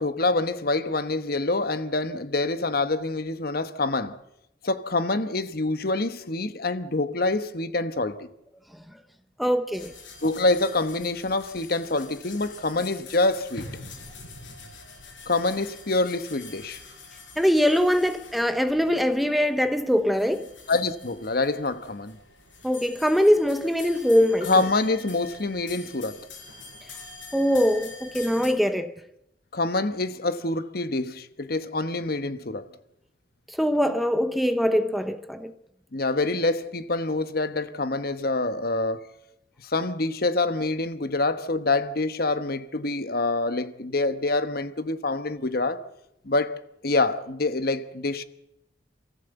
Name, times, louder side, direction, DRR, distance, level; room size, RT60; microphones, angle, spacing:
voice 1, 0.0-4.2 4.6-8.3 10.2-13.7 15.3-16.8 20.7-22.2 24.5-26.2 29.5-32.7 35.9-39.1 39.6-45.8 46.2-46.6 46.8-48.2, left 2 dB, 55° left, 1.2 m, -26 dB
voice 2, 9.4-9.9 17.4-20.5 22.6-24.7 27.3-28.9 33.5-35.5, equal, ahead, 0.9 m, -22 dB
sound 1, 9.7-28.5, left 3 dB, 90° left, 5.9 m, -45 dB
27.5 x 15.0 x 8.1 m
head